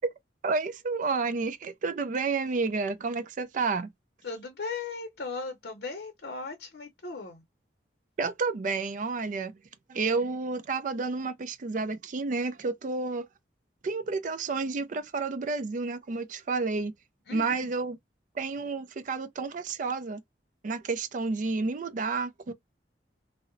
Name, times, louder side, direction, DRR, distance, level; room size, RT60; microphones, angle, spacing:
voice 1, 0.4-3.9 8.2-9.6 9.9-13.3 13.8-16.9 17.3-18.0 18.4-20.2 20.6-22.5, right 4 dB, 45° right, 0.4 m, -30 dB
voice 2, 4.2-7.4 17.3-17.7, left 4 dB, 65° left, 0.6 m, -37 dB
2.7 x 2.0 x 2.4 m
head